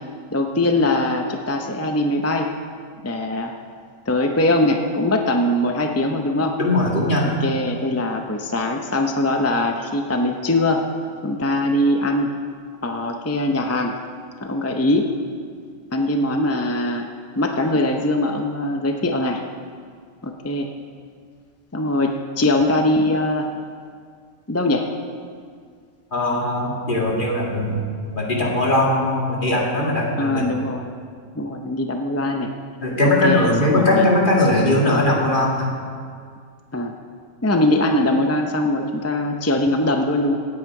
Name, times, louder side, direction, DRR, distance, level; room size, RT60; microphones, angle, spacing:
voice 1, 0.3-2.5 3.0-3.5 4.1-6.6 7.2-10.8 11.2-12.3 12.8-13.9 14.4-15.1 15.9-17.1 17.3-19.4 20.2-20.7 21.7-23.5 24.5-24.9 30.2-30.9 31.3-32.5 33.2-34.1 36.7-36.9 37.4-40.4, left 1 dB, 20° left, 4 dB, 0.4 m, -21 dB
voice 2, 6.6-7.4 26.1-27.8 28.1-30.4 32.8-35.7, left 1 dB, 40° left, -2 dB, 2.2 m, -19 dB
17.0 x 8.7 x 4.8 m, 2.1 s
omnidirectional pair, 1.4 m